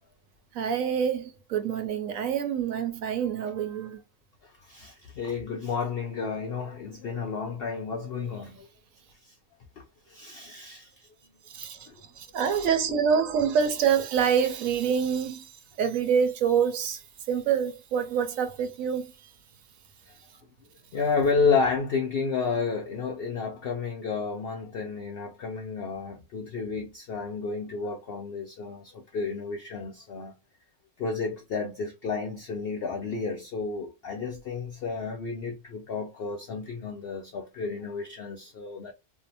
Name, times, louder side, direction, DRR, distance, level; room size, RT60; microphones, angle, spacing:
voice 1, 0.5-4.0 11.5-11.9 12.2-15.5 15.8-17.0 17.3-19.1, right 7 dB, 70° right, 0.9 m, -26 dB
voice 2, 4.4-8.7 9.2-9.3 9.8-10.9 11.9-12.0 12.9-13.0 20.1-20.2 20.9-30.4 31.0-38.9, left 5 dB, 75° left, 0.5 m, -31 dB
2.6 x 2.0 x 2.7 m
omnidirectional pair, 1.5 m